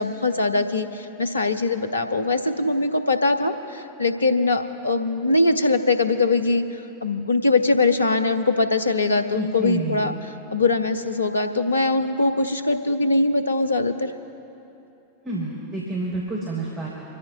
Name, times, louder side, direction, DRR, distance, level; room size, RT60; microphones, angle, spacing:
voice 1, 0.0-10.1 10.5-14.1, left 3 dB, 75° left, 9 dB, 0.7 m, -22 dB
voice 2, 9.3-10.1 15.2-16.9, right 2 dB, 30° right, -5 dB, 3.7 m, -29 dB
28.5 x 14.0 x 2.4 m, 2.9 s
figure-of-eight pair, 90°, 0 cm